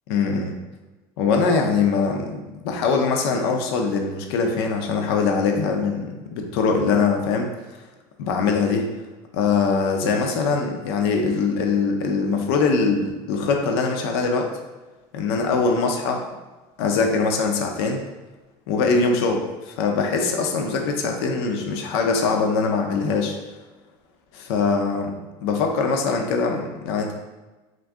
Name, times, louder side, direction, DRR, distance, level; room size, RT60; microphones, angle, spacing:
voice 1, 0.1-0.6 1.2-7.5 8.2-8.9 9.3-14.5 15.1-16.3 16.8-18.0 18.7-23.4 24.3-25.1 25.4-27.1, left 4 dB, 80° left, 3 dB, 0.6 m, -22 dB
3.7 x 2.6 x 3.5 m, 1.2 s
cardioid pair, 145°, 13 cm